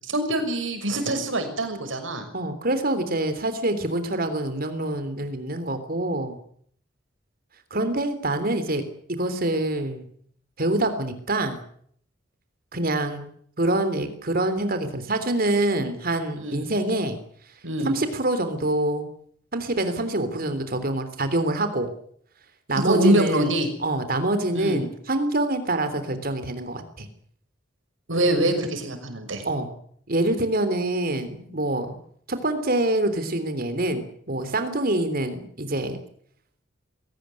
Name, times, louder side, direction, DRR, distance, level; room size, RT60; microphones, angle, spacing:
voice 1, 0.1-2.3 16.3-16.6 17.6-17.9 22.8-23.7 24.5-24.8 28.1-29.5, right 1 dB, 85° right, 7 dB, 6.2 m, -24 dB
voice 2, 2.3-6.4 7.7-8.8 9.1-10.1 10.6-11.6 12.7-13.3 13.6-17.2 17.8-19.1 19.5-21.9 22.7-23.5 23.8-27.1 29.4-29.7 30.1-32.0 32.3-36.0, right 1 dB, 50° right, 9 dB, 3.4 m, -25 dB
21.5 x 18.5 x 9.7 m, 0.62 s
head